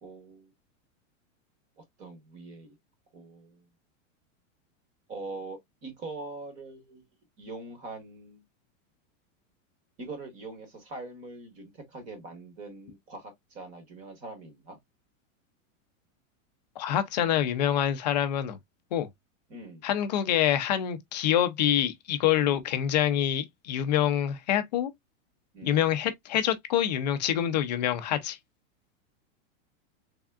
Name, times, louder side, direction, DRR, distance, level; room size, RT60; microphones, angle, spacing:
voice 1, 0.0-0.5 1.8-2.7 3.1-3.6 5.1-7.0 7.4-8.4 10.0-14.8 19.5-19.9 22.3-22.6 25.5-25.8, right 3 dB, 20° right, 0.9 m, -43 dB
voice 2, 16.8-18.6 18.9-19.1 19.8-24.9 25.6-28.4, left 10 dB, 35° left, 0.4 m, -26 dB
3.5 x 3.4 x 2.3 m
supercardioid pair, 180°, 40 cm